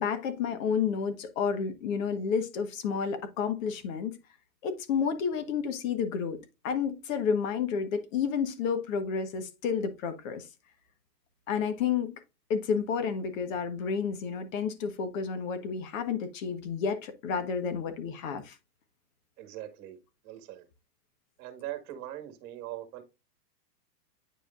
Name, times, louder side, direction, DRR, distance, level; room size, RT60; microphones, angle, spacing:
voice 1, 0.0-4.2 4.6-6.4 6.6-10.5 11.5-12.1 12.5-18.6, left 6 dB, 50° left, 1.5 m, -30 dB
voice 2, 19.4-20.0 20.2-20.7 21.4-23.0, right 13 dB, 35° right, 1.8 m, -41 dB
9.0 x 5.0 x 2.5 m
hypercardioid pair, 145°, 50 cm